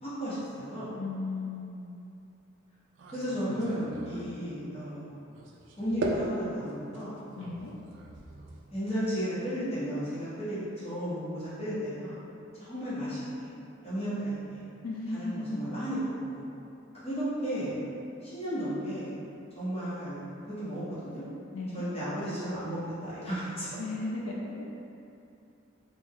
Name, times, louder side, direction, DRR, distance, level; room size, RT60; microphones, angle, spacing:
voice 1, 0.0-0.9 3.1-5.2 5.8-7.1 8.7-10.6 10.8-12.2 12.5-13.5 13.8-14.6 15.1-16.5 17.0-17.8 18.2-19.1 19.5-20.2 20.4-21.2 21.7-23.7, equal, 30° left, -12 dB, 1.2 m, -34 dB
voice 2, 1.0-1.9 7.3-7.7 14.8-15.6 21.5-21.9 23.8-24.7, left 2 dB, 85° left, -2 dB, 0.4 m, -35 dB
sound 1, 2.9-4.5 5.3-9.2, right 1 dB, 60° right, 0.4 m, -39 dB
3.3 x 2.6 x 3.5 m, 2.7 s
head